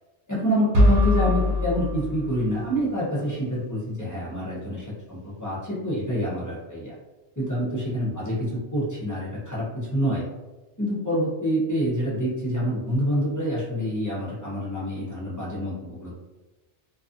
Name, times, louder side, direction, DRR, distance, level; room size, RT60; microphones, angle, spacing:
voice 1, 0.3-6.9 7.4-8.3 8.7-10.2 10.8-16.1, equal, 20° left, -8 dB, 0.6 m, -27 dB
sound 1, 0.7-2.8, left 1 dB, 85° right, 1.0 m, -22 dB
2.4 x 2.4 x 2.5 m, 1.1 s
omnidirectional pair, 1.2 m